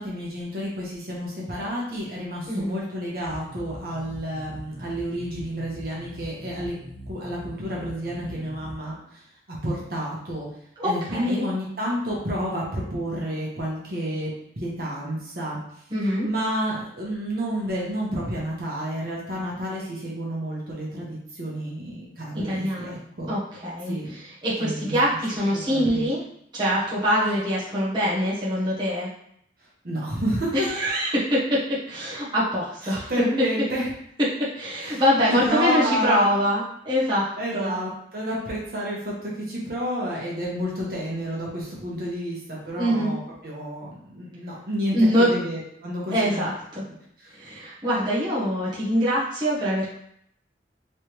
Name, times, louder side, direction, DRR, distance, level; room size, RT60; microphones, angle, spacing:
voice 1, 0.0-6.7 7.1-10.5 10.8-14.3 14.6-15.6 16.2-23.3 23.9-24.1 24.6-25.0 25.7-26.1 29.6-30.7 32.8-33.9 34.9-35.0 35.3-36.4 37.4-46.5 47.2-47.3, equal, 55° right, -4 dB, 1.0 m, -30 dB
sound 1, 3.3-8.8, equal, 35° left, 0.5 m, -42 dB
voice 2, 10.8-11.5 15.9-16.3 22.3-23.0 23.3-26.2 26.5-29.1 30.5-33.1 34.6-37.3 37.5-37.7 42.8-43.2 44.9-45.3 46.1-46.8 47.3-49.9, equal, 25° right, -8 dB, 0.9 m, -24 dB
3.3 x 3.2 x 2.9 m, 0.70 s
head